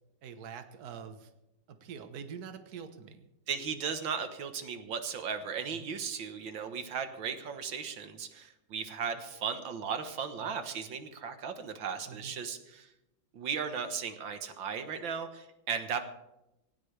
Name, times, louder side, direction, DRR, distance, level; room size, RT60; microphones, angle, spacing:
voice 1, 0.2-1.3 1.7-3.3 5.7-5.9 10.4-10.6 12.1-12.3, right 7 dB, 60° right, 8 dB, 1.6 m, -45 dB
voice 2, 3.5-12.9 13.3-16.0, right 6 dB, 90° right, 8 dB, 2.0 m, -36 dB
18.5 x 18.0 x 3.4 m, 0.91 s
omnidirectional pair, 2.0 m